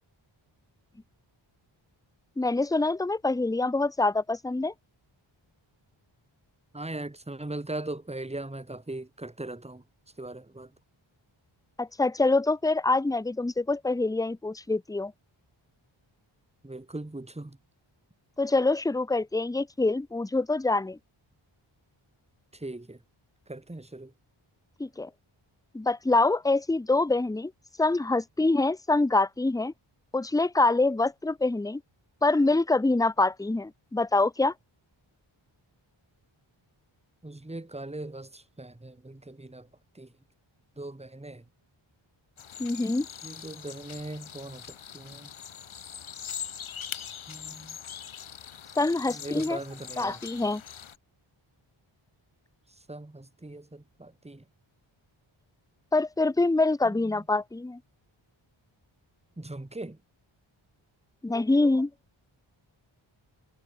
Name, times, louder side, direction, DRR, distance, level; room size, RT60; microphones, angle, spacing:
voice 1, 2.4-4.7 11.8-15.1 18.4-21.0 24.8-25.1 25.7-27.5 27.8-29.7 30.1-31.8 32.2-34.5 42.6-43.1 48.8-49.6 50.0-50.6 55.9-57.8 61.2-61.9, left 2 dB, 10° left, 0.6 m, -25 dB
voice 2, 6.7-9.8 10.2-10.7 16.6-17.6 22.5-23.0 23.5-24.1 37.2-39.7 40.0-40.1 40.8-41.4 43.2-45.3 47.3-47.8 49.1-50.2 52.9-54.4 56.9-57.2 59.4-60.0, right 2 dB, 15° right, 2.1 m, -39 dB
sound 1, 42.4-51.0, left 8 dB, 75° left, 1.3 m, -42 dB
wide cardioid pair, 100°, 49 cm